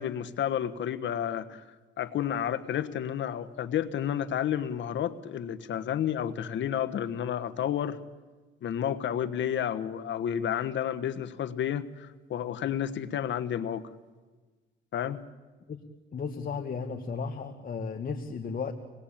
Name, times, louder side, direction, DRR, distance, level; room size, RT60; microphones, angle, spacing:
voice 1, 0.0-1.6 2.0-8.0 8.6-13.9 14.9-15.2, left 9 dB, 70° left, 12 dB, 1.3 m, -31 dB
voice 2, 16.1-18.7, left 5 dB, 45° left, 4 dB, 1.9 m, -34 dB
27.0 x 20.5 x 8.9 m, 1.3 s
cardioid pair, 90°, 20 cm